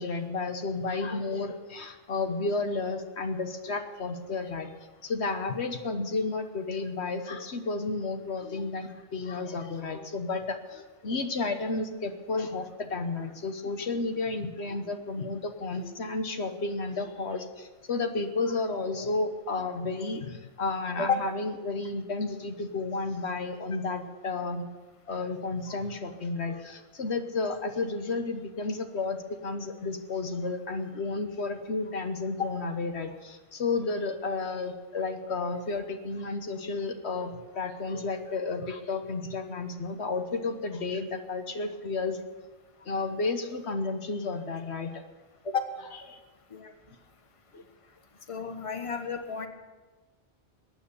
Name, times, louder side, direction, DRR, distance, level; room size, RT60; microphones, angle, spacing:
voice 1, 0.0-4.7 5.0-24.7 25.1-42.2 42.8-45.0 46.1-46.2 46.9-47.0 47.5-47.6, left 3 dB, 75° left, 7 dB, 1.4 m, -32 dB
voice 2, 48.3-49.5, left 5 dB, 30° left, 6 dB, 1.3 m, -30 dB
21.5 x 9.4 x 7.0 m, 1.3 s
omnidirectional pair, 1.1 m